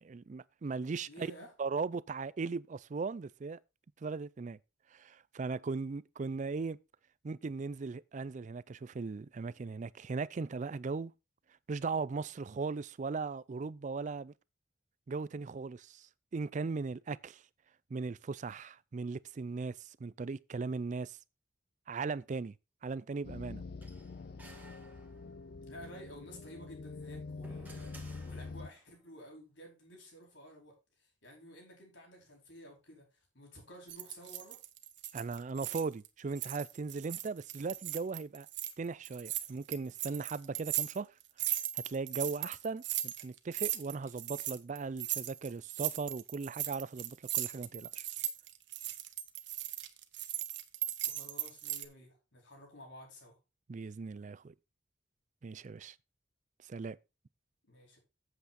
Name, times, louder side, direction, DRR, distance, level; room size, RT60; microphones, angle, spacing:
voice 1, 0.0-1.3 1.6-3.6 4.0-4.6 4.9-6.8 7.2-11.1 11.7-14.3 15.1-17.4 17.9-21.2 21.9-22.5 22.8-23.6 35.1-38.5 38.8-41.1 41.7-48.1 53.7-54.5 55.4-56.0 56.7-57.0, right 4 dB, 40° right, 0.4 m, -38 dB
voice 2, 1.1-1.5 25.6-34.6 51.1-53.4 57.6-58.0, equal, 70° left, 4.5 m, -53 dB
sound 1, 23.2-28.7, left 3 dB, 55° left, 0.4 m, -45 dB
sound 2, 23.8-25.5 26.9-28.9, right 2 dB, 10° right, 1.8 m, -57 dB
sound 3, 33.9-36.1 36.3-38.7 39.0-51.9, right 13 dB, 65° right, 1.0 m, -38 dB
8.2 x 8.0 x 4.2 m
head